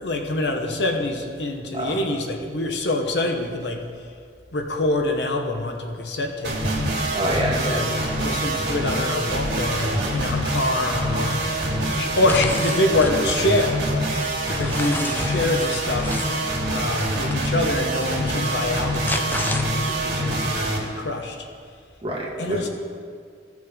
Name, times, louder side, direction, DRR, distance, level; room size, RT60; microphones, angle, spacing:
voice 1, 0.0-3.8 4.5-6.6 7.5-13.8 14.5-16.2 16.7-21.5 22.4-22.7, left 2 dB, 75° left, 3 dB, 1.0 m, -25 dB
sound 1, 6.4-20.8, right 1 dB, 85° right, 2.2 m, -25 dB
voice 2, 7.1-7.8 8.2-8.6 22.0-22.7, right 1 dB, 30° right, -4 dB, 1.7 m, -27 dB
sound 2, 12.3-13.2 13.7-16.4 17.3-17.5 18.7-20.1, left 2 dB, 10° left, 0.4 m, -32 dB
15.5 x 6.3 x 3.6 m, 2.2 s
head